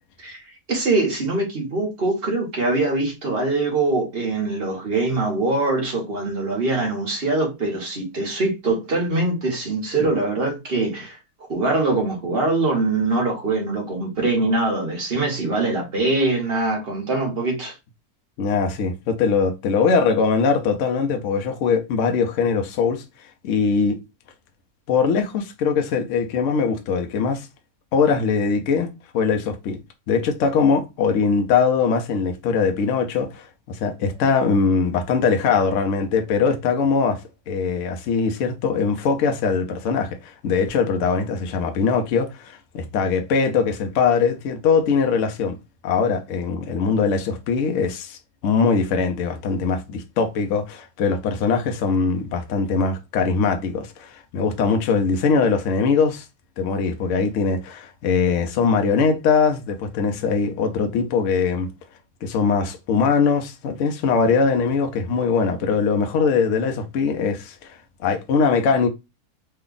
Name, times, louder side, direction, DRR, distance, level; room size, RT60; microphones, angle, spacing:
voice 1, 0.7-11.2 11.5-17.8, right 2 dB, 45° right, 1.3 m, -23 dB
voice 2, 18.4-23.0 23.4-24.0 24.9-27.5 27.9-28.9 29.1-29.8 30.1-45.6 45.8-56.2 56.6-61.7 62.2-67.7 68.0-68.9, left 5 dB, 65° left, 0.9 m, -21 dB
3.3 x 2.3 x 3.7 m
omnidirectional pair, 1.5 m